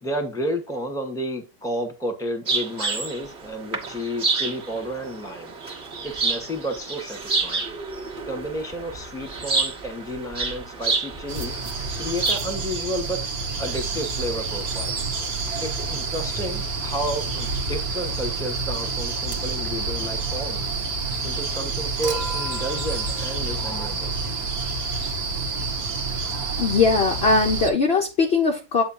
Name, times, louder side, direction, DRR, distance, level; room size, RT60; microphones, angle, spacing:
voice 1, 0.0-5.5 6.0-7.6 8.3-11.6 12.0-13.3 13.6-14.9 15.6-20.6 21.2-24.1, equal, ahead, 0.9 m, -31 dB
sound 1, 2.5-12.4, right 3 dB, 30° right, 1.3 m, -29 dB
sound 2, 11.3-27.7, right 4 dB, 55° right, 1.3 m, -28 dB
Human group actions / Chink clink / Liquid, 22.0-24.4 25.9-26.0, right 1 dB, 85° right, 1.7 m, -36 dB
voice 2, 26.2-28.8, left 4 dB, 70° left, 0.5 m, -21 dB
8.1 x 5.0 x 2.8 m
omnidirectional pair, 2.1 m